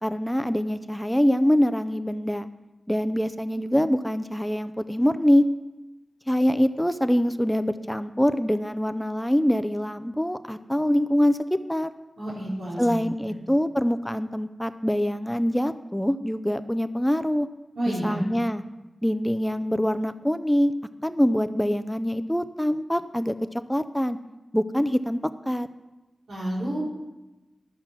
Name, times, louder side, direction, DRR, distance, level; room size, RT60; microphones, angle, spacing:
voice 1, 0.0-2.5 2.9-5.5 6.3-11.9 12.8-17.5 17.9-18.6 19.0-20.7 21.0-24.2 24.5-25.2 25.5-25.7, equal, 5° left, 11 dB, 0.4 m, -24 dB
voice 2, 12.2-13.0 17.7-18.2 26.3-26.8, right 1 dB, 85° right, -5 dB, 4.4 m, -29 dB
13.0 x 7.2 x 6.1 m, 1.1 s
wide cardioid pair, 95°, 0 cm